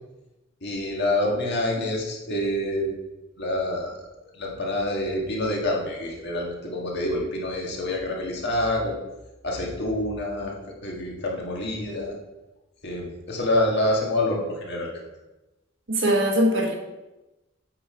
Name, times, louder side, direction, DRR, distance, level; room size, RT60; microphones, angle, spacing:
voice 1, 0.6-2.9 3.4-4.0 4.3-9.0 9.4-10.5 10.8-12.2 12.8-15.0, left 1 dB, 55° left, -1 dB, 1.9 m, -27 dB
voice 2, 15.9-16.7, equal, 65° right, 2 dB, 1.4 m, -21 dB
8.2 x 5.7 x 5.1 m, 1.0 s
head